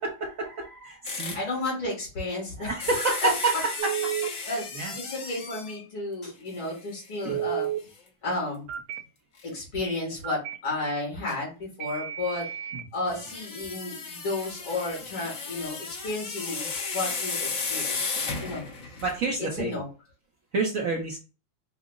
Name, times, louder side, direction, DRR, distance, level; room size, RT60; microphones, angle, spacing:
voice 1, 0.0-1.6 2.6-3.5 3.8-4.3 4.7-4.9 7.2-7.4 12.7-12.8 19.0-19.8 20.5-21.2, right 3 dB, 60° right, 0 dB, 0.9 m, -29 dB
sound 1, 1.0-1.5 2.8-5.8 6.5-6.6 7.0-7.1 9.4-9.5 11.3-11.4 13.1-19.3, left 4 dB, 55° left, 1.1 m, -34 dB
voice 2, 1.3-2.7 3.2-3.3 4.5-4.6 4.9-7.7 8.2-8.6 9.4-12.5 12.9-15.8 16.0-16.7 16.9-18.6 19.4-19.8, left 2 dB, 75° left, -3 dB, 3.4 m, -32 dB
Telephone, 3.8-4.3 7.3-7.8 8.7-9.0 10.2-10.5 11.8-12.8, right 11 dB, 90° right, 1.4 m, -31 dB
5.6 x 2.0 x 3.6 m, 0.33 s
omnidirectional pair, 2.2 m